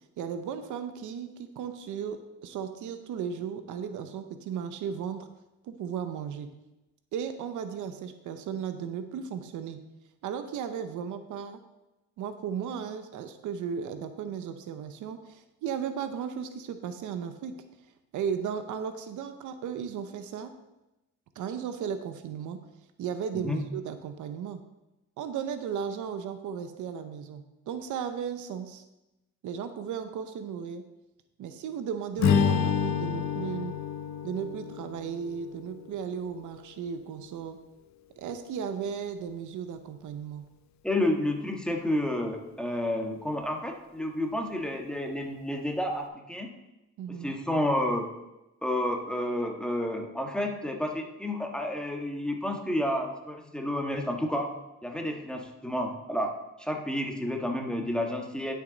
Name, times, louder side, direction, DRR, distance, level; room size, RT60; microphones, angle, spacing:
voice 1, 0.2-5.3 5.6-6.5 7.1-9.8 10.2-11.6 12.2-17.5 18.1-20.5 21.4-22.6 23.0-24.6 25.2-28.8 29.4-30.8 31.4-33.8 34.2-37.6 38.2-40.4 47.0-47.3, right 7 dB, 80° right, 9 dB, 0.8 m, -35 dB
Strum, 32.2-36.6, left 7 dB, 65° left, 0.9 m, -29 dB
voice 2, 40.8-46.5 47.1-48.1 48.6-54.5 54.8-58.5, left 1 dB, 5° left, 2 dB, 1.5 m, -30 dB
10.5 x 6.4 x 4.0 m, 0.96 s
cardioid pair, 90°, 30 cm